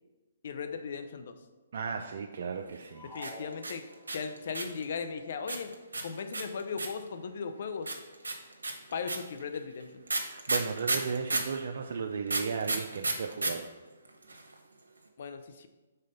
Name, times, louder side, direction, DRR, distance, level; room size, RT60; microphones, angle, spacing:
voice 1, 0.4-1.4 3.1-5.7 6.0-7.9 8.9-10.0 15.2-15.7, left 5 dB, 55° left, 8 dB, 0.6 m, -37 dB
voice 2, 1.7-3.1 10.3-13.7, right 5 dB, 60° right, 4 dB, 0.4 m, -35 dB
sound 1, 2.9-4.4, left 1 dB, 5° right, 1.1 m, -48 dB
sound 2, 3.2-4.8 5.5-7.1 7.9-11.6 12.3-13.5 13.8-13.9 14.1-14.5, right 2 dB, 90° right, 0.9 m, -32 dB
5.5 x 3.8 x 5.2 m, 1.2 s
hypercardioid pair, 140°, 0 cm